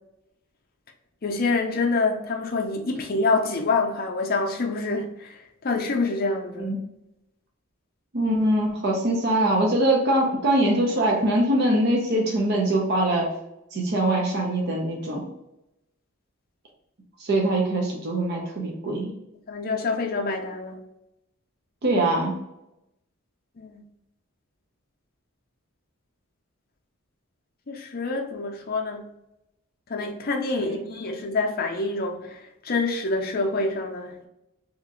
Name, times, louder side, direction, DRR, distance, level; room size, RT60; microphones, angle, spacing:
voice 1, 1.2-5.3 5.6-6.7 19.5-20.8 23.6-23.8 27.7-29.0 29.9-32.4 32.6-34.3, left 3 dB, 45° left, 0.5 m, -26 dB
voice 2, 8.1-13.3 13.7-15.3 17.2-19.1 21.8-22.4 30.6-30.8, right 1 dB, 50° right, 0.6 m, -23 dB
2.9 x 2.5 x 3.8 m
head